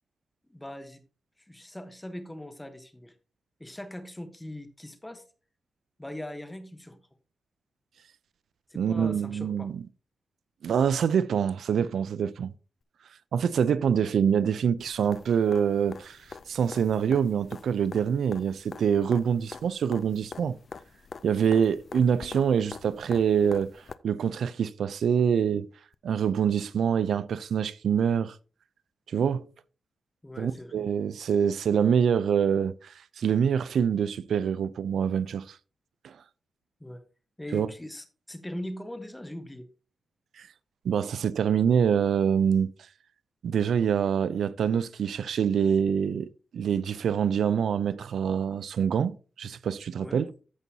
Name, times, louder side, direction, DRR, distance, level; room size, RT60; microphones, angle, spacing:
voice 1, 0.5-1.0 1.5-3.1 3.6-5.2 6.0-7.0 8.7-9.7 30.2-30.9 36.8-37.0 37.4-39.7 50.0-50.3, left 1 dB, 10° left, 1.2 m, -40 dB
voice 2, 8.8-9.8 10.6-12.5 13.3-16.2 16.5-20.6 21.2-23.7 24.0-25.7 26.0-28.4 29.1-29.5 30.4-35.6 36.0-36.1 37.5-37.7 40.4-40.5 40.8-42.7 43.4-50.3, right 7 dB, 80° right, 0.5 m, -25 dB
sound 1, 14.8-23.9 25.9-26.0, left 5 dB, 45° left, 0.4 m, -45 dB
14.5 x 5.4 x 2.8 m
wide cardioid pair, 125°, 0 cm